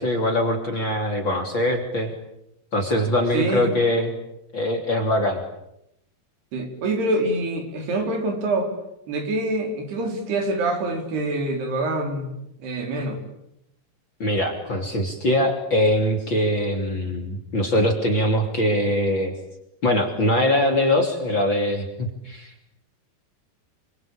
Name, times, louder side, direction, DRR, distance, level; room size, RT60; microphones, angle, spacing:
voice 1, 0.0-2.1 2.7-4.1 4.5-5.4 14.2-19.3 19.8-22.7, left 1 dB, 30° left, 3 dB, 3.5 m, -22 dB
voice 2, 3.3-3.7 6.5-8.7 9.1-12.3 12.6-13.2, right 2 dB, 80° right, 4 dB, 6.2 m, -25 dB
28.0 x 24.0 x 8.8 m, 0.80 s
omnidirectional pair, 4.6 m